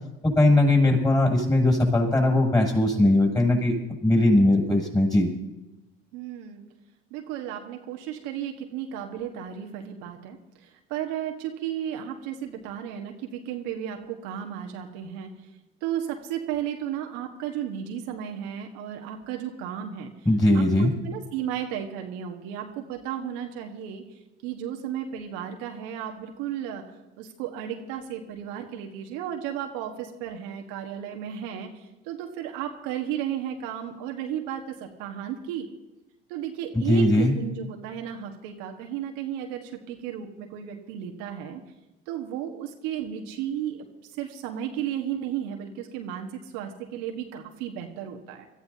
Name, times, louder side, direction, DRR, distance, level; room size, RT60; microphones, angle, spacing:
voice 1, 0.2-5.3 20.2-20.9 36.7-37.3, left 1 dB, 10° left, 1 dB, 6.6 m, -20 dB
voice 2, 6.1-6.6 7.1-10.4 10.9-15.3 15.8-20.1 20.5-24.0 24.4-26.8 27.2-31.7 32.0-35.7 36.3-41.6 42.1-43.9 44.2-46.3 46.5-48.5, right 10 dB, 70° right, 3 dB, 1.5 m, -34 dB
24.5 x 14.0 x 2.8 m, 1.0 s
hypercardioid pair, 70°, 30 cm